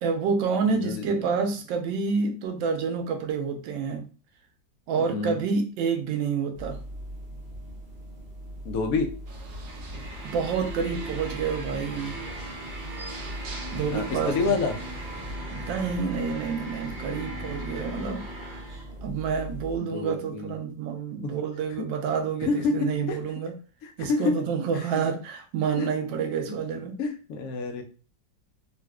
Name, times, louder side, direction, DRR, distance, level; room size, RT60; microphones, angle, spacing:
voice 1, 0.0-4.0 4.9-6.8 10.2-12.2 13.7-14.5 15.5-18.2 19.0-23.6 24.0-27.0, right 5 dB, 90° right, 6 dB, 1.3 m, -28 dB
voice 2, 0.7-1.2 5.0-5.4 8.6-9.1 13.9-14.8 19.8-20.5 21.2-21.3 22.4-23.2 24.0-24.4 24.7-25.0 25.8-26.6 27.0-27.8, left 4 dB, 70° left, 4 dB, 0.9 m, -28 dB
sound 1, 6.5-19.8, right 1 dB, 50° right, 0.6 m, -38 dB
sound 2, 9.3-15.4, right 1 dB, 65° right, 1.2 m, -44 dB
4.0 x 2.4 x 2.2 m, 0.36 s
omnidirectional pair, 2.0 m